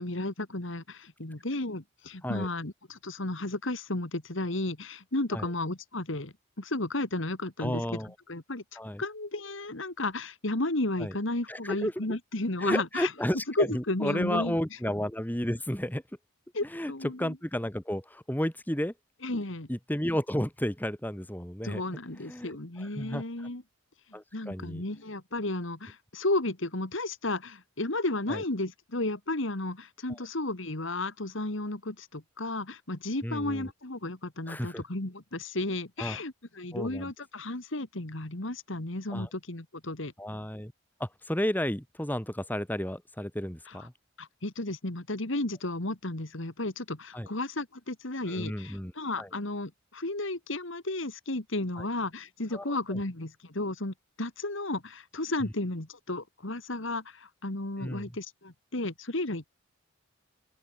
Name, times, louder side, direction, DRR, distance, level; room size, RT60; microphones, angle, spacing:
voice 1, 0.0-7.8 8.3-13.1 13.6-14.6 16.5-17.4 19.2-19.7 21.6-23.6 24.3-40.1 43.7-43.9 44.2-59.5, left 2 dB, 60° left, 2.2 m, -33 dB
voice 2, 7.6-8.1 8.8-9.0 11.0-11.1 11.5-12.2 12.6-16.0 16.7-18.9 19.7-21.8 22.3-23.5 24.1-24.8 28.3-28.4 30.1-30.2 33.2-33.7 34.5-34.8 36.0-36.2 36.7-37.1 39.1-39.3 40.2-40.7 41.0-43.9 47.1-47.3 48.3-48.9 49.2-49.3 51.8-51.9 52.5-53.0 57.8-58.1, equal, 10° left, 1.9 m, -32 dB
open air
head